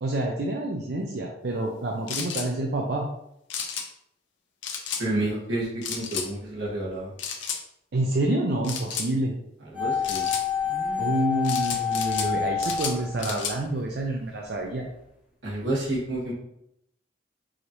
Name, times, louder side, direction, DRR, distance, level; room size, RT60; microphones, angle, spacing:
voice 1, 0.0-3.1 7.9-9.3 11.0-14.9, right 1 dB, 60° right, 0 dB, 0.5 m, -28 dB
sound 1, 2.1-2.5 3.5-3.9 4.6-5.0 5.8-6.3 7.2-7.6 8.6-9.1 10.0-10.4 11.4-12.3 12.6-13.6, left 6 dB, 90° left, 0.6 m, -32 dB
voice 2, 5.0-7.1 9.7-10.3 10.7-11.1 15.4-16.3, right 1 dB, 85° right, -5 dB, 1.5 m, -30 dB
sound 2, 9.7-13.9 14.1-14.2, left 7 dB, 10° right, 0.7 m, -28 dB
4.9 x 2.7 x 3.0 m, 0.78 s
head